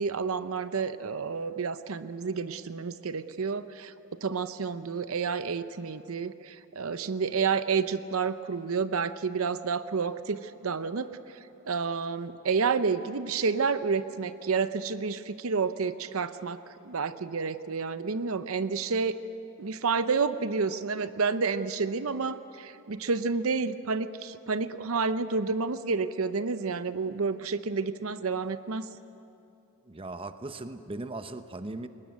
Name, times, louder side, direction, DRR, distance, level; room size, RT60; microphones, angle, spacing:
voice 1, 0.0-11.1 11.6-19.2 19.6-28.9, right 5 dB, 70° right, 12 dB, 0.7 m, -30 dB
voice 2, 29.9-31.9, right 2 dB, 25° right, 9 dB, 0.8 m, -38 dB
22.0 x 19.5 x 9.4 m, 2.8 s
head